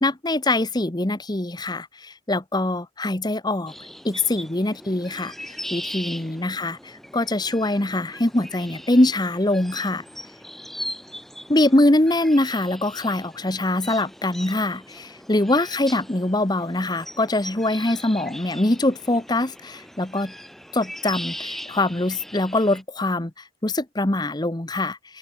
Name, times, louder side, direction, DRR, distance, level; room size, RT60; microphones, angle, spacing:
voice 1, 0.0-3.7 4.0-5.3 5.7-10.0 11.5-20.3 20.7-25.2, left 1 dB, 20° left, 1.1 m, -23 dB
sound 1, 3.7-22.8, equal, ahead, 2.5 m, -39 dB
head